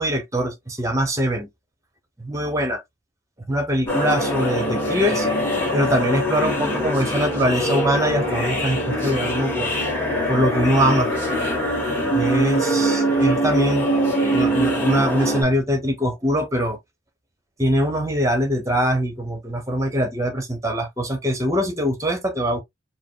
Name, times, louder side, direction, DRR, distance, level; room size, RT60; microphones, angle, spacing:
voice 1, 0.0-1.5 2.2-2.8 3.5-5.3 5.7-9.7 10.3-11.1 12.1-16.8 17.6-22.6, equal, 15° right, 1.1 m, -23 dB
sound 1, 3.9-15.4, equal, 10° left, 1.7 m, -23 dB
4.5 x 2.1 x 3.9 m
head